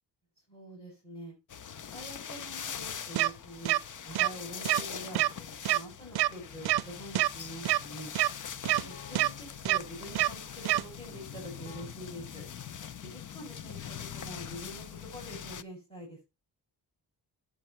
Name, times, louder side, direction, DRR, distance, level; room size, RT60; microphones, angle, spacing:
voice 1, 0.5-1.4 1.7-3.7 4.0-8.1 8.9-12.5 13.0-16.2, equal, 15° left, -2 dB, 7.0 m, -45 dB
sound 1, 1.5-15.6, left 8 dB, 45° left, 0.8 m, -43 dB
sound 2, 3.2-3.3 3.7-3.8 4.2-4.3 4.7-4.8 5.1-5.3 5.7-5.8 6.2-6.3 6.7-6.8 7.2-7.3 7.7-7.8 8.2-8.3 8.7-8.8 9.2-9.3 9.7-9.8 10.2-10.3 10.7-10.8, right 14 dB, 65° right, 0.6 m, -25 dB
Keyboard (musical), 6.5-13.3, left 6 dB, 75° left, 2.2 m, -53 dB
10.5 x 8.4 x 4.5 m, 0.27 s
cardioid pair, 95°, 42 cm